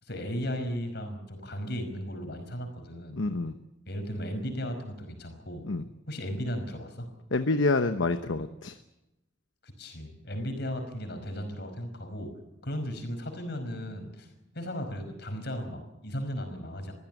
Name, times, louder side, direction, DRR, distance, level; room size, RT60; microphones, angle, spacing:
voice 1, 0.0-3.2 3.9-5.6 6.1-7.1 9.6-12.3 12.6-16.9, equal, 55° left, 6 dB, 5.3 m, -36 dB
voice 2, 3.2-3.5 5.6-5.8 7.3-8.7, left 3 dB, 75° left, 8 dB, 1.0 m, -27 dB
23.0 x 15.5 x 9.1 m, 0.93 s
head